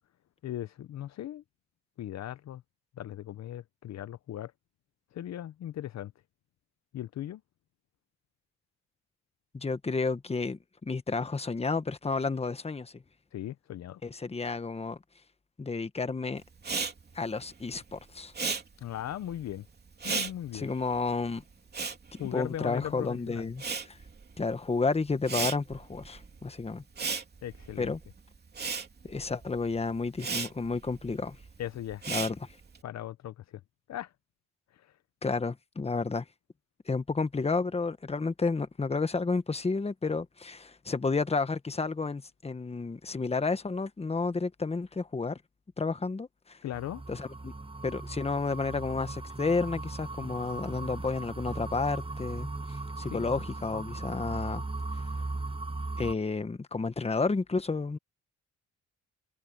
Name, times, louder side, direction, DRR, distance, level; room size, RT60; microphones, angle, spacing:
voice 1, 0.4-1.4 2.0-2.6 3.0-4.5 5.1-6.1 6.9-7.4 13.3-14.0 18.8-19.7 20.0-20.7 22.2-23.5 27.4-27.9 31.6-32.0 32.8-33.6 33.9-34.1 34.7-34.9 46.6-47.0 53.1-53.3, left 12 dB, 60° left, 0.8 m, -38 dB
voice 2, 9.5-13.0 14.0-15.0 15.6-16.4 17.1-18.3 20.5-21.4 22.1-23.6 24.4-26.8 27.8-28.0 29.0-31.4 32.1-32.5 35.2-36.2 36.9-45.4 45.8-46.6 47.1-47.5 47.8-54.6 56.0-58.0, left 4 dB, 20° left, 1.3 m, -31 dB
Respiratory sounds, 16.6-23.0 23.3-32.8, right 5 dB, 35° right, 3.3 m, -36 dB
sound 1, 46.7-56.1, right 2 dB, 20° right, 5.6 m, -38 dB
cardioid pair, 90°, 30 cm